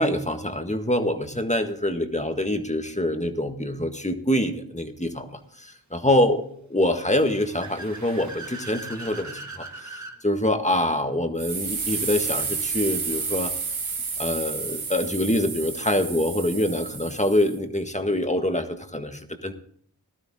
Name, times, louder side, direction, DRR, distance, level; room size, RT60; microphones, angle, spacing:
voice 1, 0.0-6.4 6.7-13.5 14.2-19.5, left 1 dB, 15° left, 6 dB, 1.7 m, -25 dB
Car / Accelerating revving vroom, 6.9-10.2, right 3 dB, 40° right, 1.6 m, -40 dB
sound 1, 11.4-17.6, right 5 dB, 90° right, 1.7 m, -31 dB
14.5 x 12.5 x 3.7 m, 0.62 s
cardioid pair, 40°, 46 cm